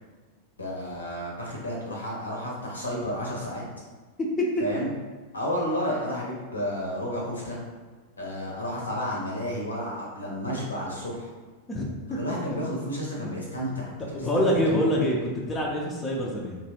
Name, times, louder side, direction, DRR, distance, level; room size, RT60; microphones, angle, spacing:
voice 1, 0.6-3.6 4.6-4.9 5.3-7.6 8.2-11.3 12.1-14.3 14.7-14.8, equal, 75° left, -3 dB, 0.8 m, -31 dB
voice 2, 14.1-16.6, equal, 20° left, -2 dB, 0.5 m, -25 dB
2.9 x 2.4 x 2.8 m, 1.4 s
figure-of-eight pair, 90°, 0 cm